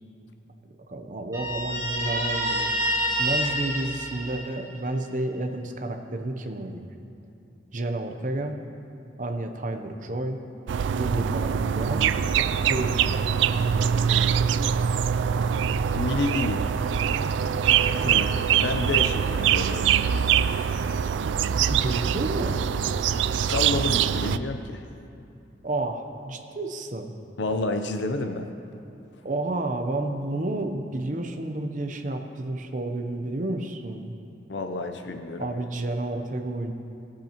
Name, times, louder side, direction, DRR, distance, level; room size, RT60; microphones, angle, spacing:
voice 1, 0.9-2.7 3.2-6.8 7.7-8.6 9.2-10.4 10.9-12.1 12.7-13.3 18.0-18.3 21.7-22.6 25.6-27.1 29.2-34.1 35.4-36.7, right 2 dB, 45° right, 5 dB, 0.7 m, -30 dB
Guitar, 1.3-4.9, equal, 20° right, 1.7 m, -28 dB
sound 1, 10.7-24.4, right 8 dB, 80° right, 0.3 m, -24 dB
voice 2, 15.9-16.7 18.1-18.2 18.6-19.9 23.3-24.8 27.4-28.5 34.5-35.6, left 2 dB, 75° left, 6 dB, 0.6 m, -29 dB
18.0 x 8.6 x 3.0 m, 2.7 s
head